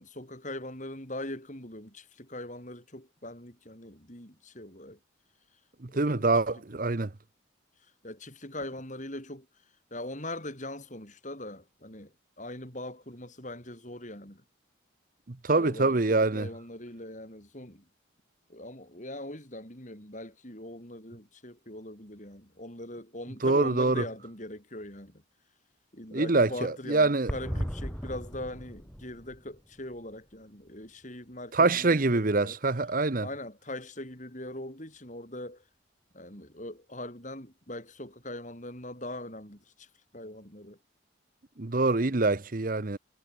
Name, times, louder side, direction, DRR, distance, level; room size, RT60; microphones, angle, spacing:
voice 1, 0.0-5.0 5.9-6.3 8.0-9.5 9.9-14.4 15.5-17.8 18.5-25.2 25.9-32.6 33.2-35.6 36.1-40.8, left 1 dB, 40° left, 6.6 m, -41 dB
voice 2, 5.8-7.1 15.3-16.5 23.4-24.0 26.1-27.3 31.5-33.3 41.6-43.0, right 3 dB, 45° right, 0.9 m, -25 dB
sound 1, 27.3-31.0 31.3-31.4 31.6-31.7, equal, 5° left, 6.9 m, -38 dB
head